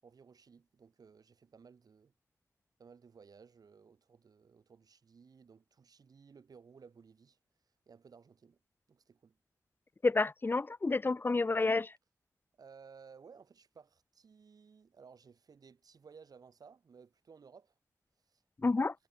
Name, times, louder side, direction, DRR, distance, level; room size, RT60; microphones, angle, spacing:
voice 1, 0.0-2.1 2.8-7.4 7.9-8.6 8.9-9.4 12.6-17.8 18.2-18.4 18.8-18.9, right 5 dB, 70° right, 5.7 m, -58 dB
voice 2, 10.0-11.9 18.6-18.9, left 3 dB, 30° left, 0.8 m, -29 dB
wide cardioid pair, 95°, 7 cm